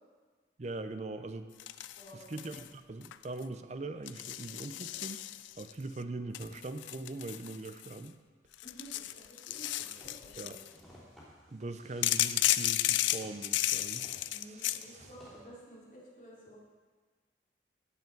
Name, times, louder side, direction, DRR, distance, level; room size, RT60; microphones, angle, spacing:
voice 1, 0.6-1.5 2.1-5.2 5.6-8.2 10.4-10.6 11.5-15.1, right 2 dB, 35° right, 10 dB, 0.5 m, -42 dB
sound 1, 1.6-2.7 3.0-3.4 4.1-5.7 6.3-8.1 8.5-10.7 12.0-14.8, left 14 dB, 80° left, 0.3 m, -33 dB
voice 2, 1.9-2.5 8.6-10.6 14.3-16.6, right 1 dB, 45° left, -6 dB, 3.1 m, -52 dB
sound 2, 9.7-15.4, equal, 5° left, 3.4 m, -58 dB
16.5 x 5.8 x 4.5 m, 1.5 s
head